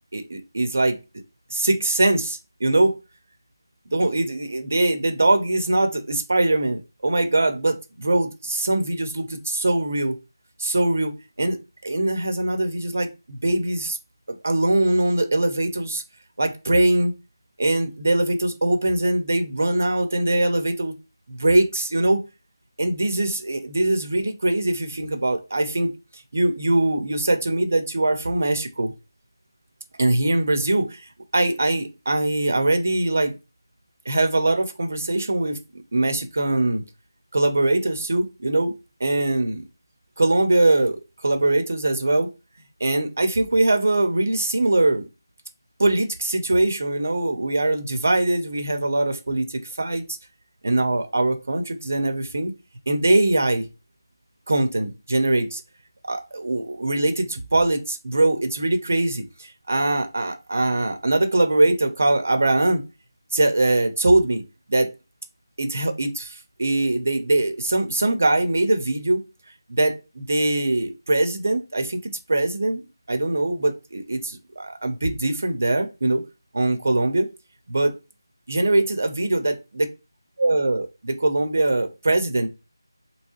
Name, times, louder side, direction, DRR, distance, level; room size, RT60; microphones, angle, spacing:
voice 1, 0.1-1.0 1.5-3.0 3.9-10.2 10.6-14.0 14.4-16.0 16.4-17.1 17.6-20.9 21.3-22.2 22.8-25.9 26.3-28.9 30.0-31.0 31.3-33.4 34.1-36.8 37.3-38.7 39.0-39.6 40.2-42.3 42.8-45.1 45.8-50.0 50.6-52.5 52.9-53.7 54.5-55.6 56.1-59.2 59.7-62.8 63.3-64.4 64.7-64.9 65.6-69.2 69.7-76.2 76.5-77.3 77.7-77.9 78.5-79.9 80.4-82.5, right 2 dB, 30° right, 0.4 m, -22 dB
3.6 x 2.8 x 2.8 m
figure-of-eight pair, 180°, 2 cm